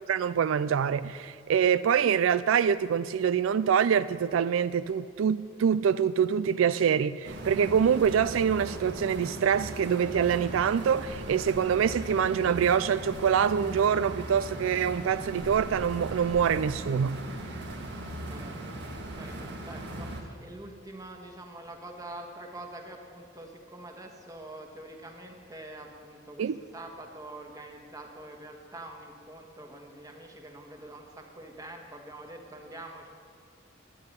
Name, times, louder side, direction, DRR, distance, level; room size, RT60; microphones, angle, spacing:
voice 1, 0.1-17.2 26.4-26.6, right 7 dB, 80° right, 0.3 m, -25 dB
sound 1, 7.2-20.2, right 1 dB, 60° right, 1.7 m, -39 dB
voice 2, 18.3-33.1, right 1 dB, 20° right, 1.5 m, -45 dB
12.0 x 8.8 x 9.7 m
head